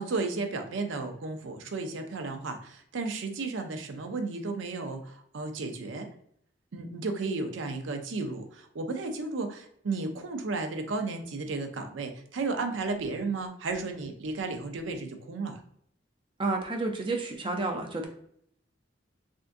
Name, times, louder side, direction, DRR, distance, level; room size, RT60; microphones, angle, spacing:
voice 1, 0.0-6.1 6.7-15.6, right 3 dB, 80° right, 6 dB, 0.5 m, -33 dB
voice 2, 16.4-18.1, right 3 dB, 25° right, 3 dB, 0.5 m, -30 dB
3.5 x 2.5 x 2.5 m, 0.67 s
head